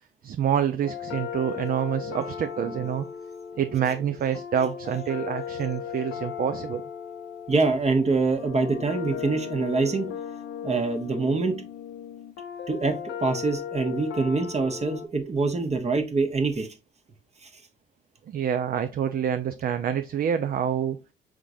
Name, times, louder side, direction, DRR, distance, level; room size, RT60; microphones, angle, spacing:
voice 1, 0.2-3.1 3.6-6.8 18.3-21.0, right 8 dB, 50° right, 0.4 m, -27 dB
sound 1, 0.8-15.1, left 8 dB, 80° left, 0.7 m, -37 dB
voice 2, 7.5-10.1 10.6-11.6 12.7-16.7 17.4-17.5, right 3 dB, 35° right, 1.0 m, -25 dB
4.8 x 3.7 x 2.6 m
cardioid pair, 90°, 20 cm